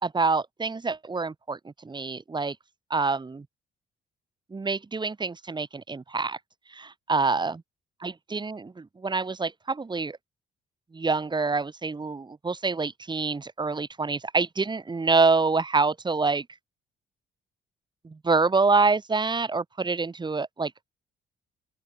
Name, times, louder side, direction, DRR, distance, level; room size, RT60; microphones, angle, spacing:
voice 1, 0.0-2.6 2.9-3.5 4.5-6.4 6.7-7.6 8.0-10.2 10.9-16.4 18.0-20.7, right 4 dB, 20° right, 1.4 m, -26 dB
open air
cardioid pair, 90°, 20 cm